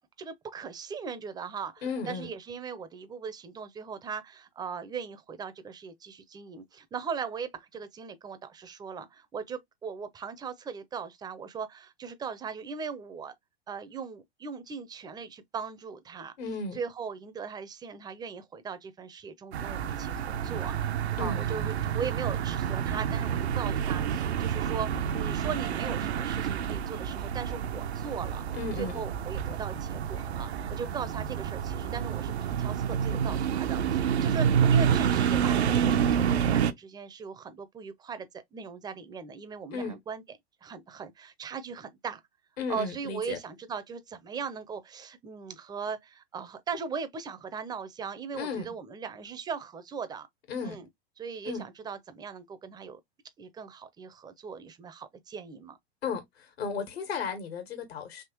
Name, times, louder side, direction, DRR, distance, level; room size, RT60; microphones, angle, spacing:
voice 1, 0.2-13.3 13.7-16.3 16.8-20.8 21.2-28.4 28.8-40.2 40.6-42.2 42.7-50.3 50.6-50.9 51.2-53.0 53.4-55.8, right 6 dB, 15° right, 0.5 m, -39 dB
voice 2, 1.8-2.3 16.4-16.8 21.2-21.4 28.5-29.0 39.7-40.0 42.6-43.4 48.3-48.8 50.5-50.8 51.4-51.6 56.0-58.2, left 5 dB, 70° left, 1.6 m, -34 dB
sound 1, 19.5-36.7, right 8 dB, 80° right, 0.5 m, -28 dB
3.5 x 2.8 x 2.8 m
hypercardioid pair, 100°, 32 cm